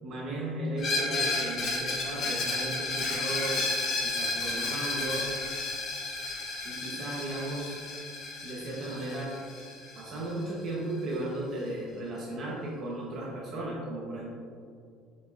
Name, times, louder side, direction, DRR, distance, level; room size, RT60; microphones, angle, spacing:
voice 1, 0.0-3.6 4.0-5.3 6.6-7.7 8.4-9.3 9.9-14.3, right 2 dB, 45° right, -4 dB, 1.3 m, -35 dB
Screech, 0.8-10.4, left 3 dB, 40° left, 1.4 m, -32 dB
6.9 x 5.3 x 2.7 m, 2.3 s
cardioid pair, 135°, 0 cm